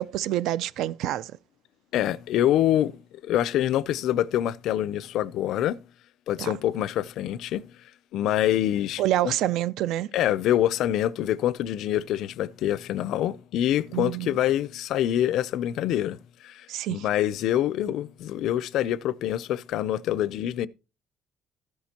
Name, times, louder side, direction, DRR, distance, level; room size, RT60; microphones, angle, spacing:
voice 1, 0.0-1.3 6.4-6.5 9.0-10.1 13.9-14.4 16.7-17.1, right 13 dB, 70° right, 0.4 m, -27 dB
voice 2, 1.9-5.8 6.3-7.7 8.1-9.3 10.1-16.2 16.4-20.7, left 12 dB, 65° left, 0.5 m, -26 dB
13.5 x 10.5 x 2.9 m
cardioid pair, 165°, 0 cm